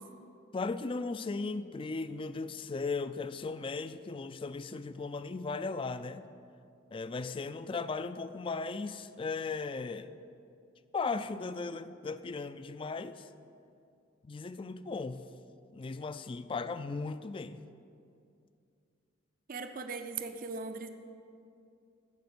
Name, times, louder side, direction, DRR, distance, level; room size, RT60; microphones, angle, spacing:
voice 1, 0.5-6.3 6.9-10.1 10.9-13.3 14.2-15.2 15.7-17.6, left 4 dB, 25° left, 12 dB, 0.3 m, -37 dB
voice 2, 19.5-20.9, right 4 dB, 45° right, 8 dB, 0.5 m, -39 dB
15.0 x 5.3 x 6.8 m, 2.5 s
head